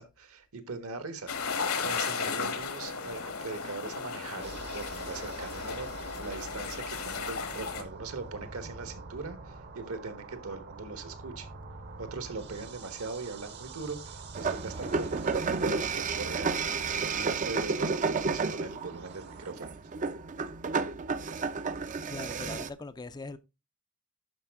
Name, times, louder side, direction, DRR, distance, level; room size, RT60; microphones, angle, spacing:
voice 1, 0.0-11.5 12.0-19.7, right 3 dB, 70° right, 1.4 m, -41 dB
sound 1, 1.3-7.8, left 5 dB, 70° left, 1.3 m, -35 dB
sound 2, 4.4-19.5, right 3 dB, 50° right, 0.9 m, -46 dB
sound 3, 14.4-22.7, right 4 dB, 35° right, 0.5 m, -31 dB
voice 2, 22.1-23.4, left 3 dB, 20° left, 0.4 m, -41 dB
11.5 x 4.8 x 3.6 m
head